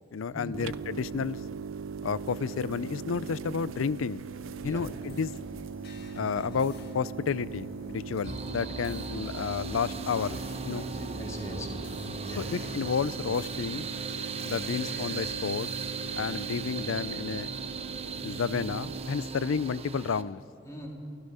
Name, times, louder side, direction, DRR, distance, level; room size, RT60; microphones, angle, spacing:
voice 1, 0.0-1.4 2.0-4.2 4.6-5.3 6.1-10.4 10.7-10.9 12.5-13.9 14.4-15.7 16.2-17.5 18.2-20.4, left 6 dB, 85° left, 19 dB, 0.5 m, -31 dB
sound 1, 0.5-19.1, right 6 dB, 85° right, 0.5 m, -40 dB
sound 2, 4.3-16.3, left 2 dB, 55° left, 1.8 m, -49 dB
sound 3, 8.2-20.2, right 4 dB, 30° right, 1.0 m, -38 dB
voice 2, 10.7-11.8 12.3-12.5 20.6-20.9, equal, 15° left, -1 dB, 3.2 m, -40 dB
28.5 x 16.5 x 5.5 m, 2.8 s
head